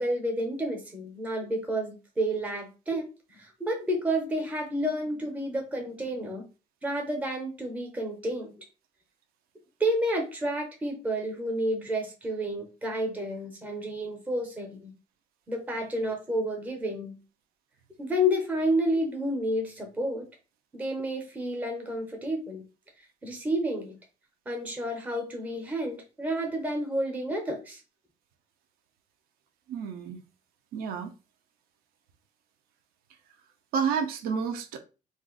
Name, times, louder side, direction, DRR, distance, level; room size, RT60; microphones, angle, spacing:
voice 1, 0.0-3.1 3.3-6.4 6.8-8.6 9.8-14.9 15.5-17.2 18.0-20.3 20.7-22.6 23.2-24.0 24.5-27.8, equal, 10° right, 0.6 m, -30 dB
voice 2, 29.7-30.2 30.7-31.1 33.7-34.8, right 6 dB, 80° right, 0.6 m, -30 dB
2.5 x 2.4 x 3.7 m
cardioid pair, 180°, 15 cm